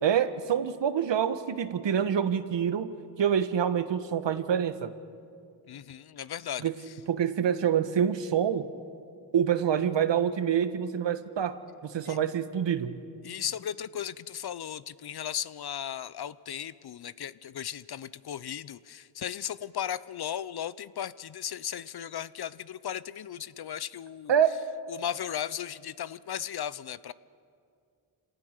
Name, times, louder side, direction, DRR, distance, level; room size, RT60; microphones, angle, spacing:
voice 1, 0.0-4.9 6.6-6.7 7.1-8.7 9.3-13.0 24.3-24.6, right 8 dB, 60° right, 11 dB, 1.3 m, -26 dB
voice 2, 5.7-6.9 12.1-12.2 13.2-24.3 24.9-27.1, left 9 dB, 50° left, 17 dB, 0.7 m, -36 dB
26.5 x 18.0 x 6.6 m, 2.3 s
cardioid pair, 65°, 48 cm